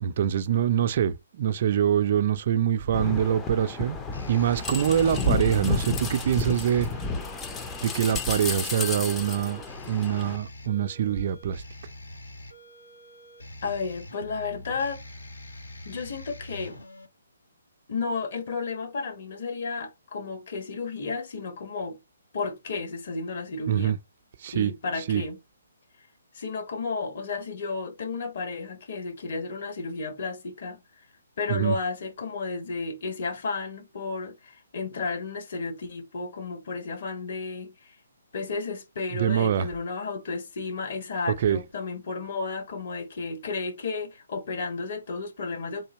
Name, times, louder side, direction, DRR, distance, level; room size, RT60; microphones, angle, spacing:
voice 1, 0.0-4.0 4.3-6.9 7.8-9.6 9.9-11.6 23.7-24.0 24.4-24.7 25.1-25.2 31.5-31.8 39.1-39.7 41.4-41.6, right 9 dB, 45° right, 0.4 m, -24 dB
sound 1, 2.6-17.1, left 1 dB, 80° left, 1.2 m, -46 dB
sound 2, 2.9-10.4, left 4 dB, 15° left, 0.5 m, -32 dB
voice 2, 13.6-15.0 15.8-16.8 17.9-22.0 22.3-24.0 24.5-25.4 26.3-30.8 31.4-37.7 38.3-45.9, left 4 dB, 50° left, 1.2 m, -33 dB
3.7 x 2.7 x 4.0 m
figure-of-eight pair, 135°, 0 cm